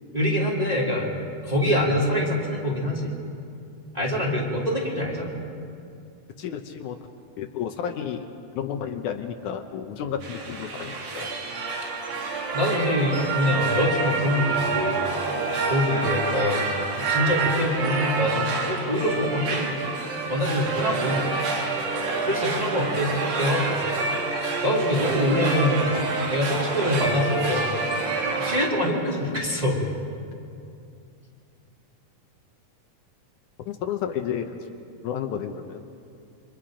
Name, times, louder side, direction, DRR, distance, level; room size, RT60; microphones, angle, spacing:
voice 1, 0.1-1.1 1.4-3.1 3.9-5.4 12.5-15.0 15.7-16.7 17.1-19.7 20.3-21.2 22.2-23.8 24.6-25.9 26.3-27.7 28.4-29.8, left 1 dB, 15° right, -4 dB, 2.7 m, -24 dB
voice 2, 6.4-7.0 7.4-8.3 8.6-11.4 33.6-34.6 35.0-35.8, left 8 dB, 75° left, 6 dB, 2.3 m, -31 dB
sound 1, 10.2-28.7, right 4 dB, 70° right, 3.6 m, -27 dB
28.0 x 25.0 x 5.1 m, 2.5 s
omnidirectional pair, 3.7 m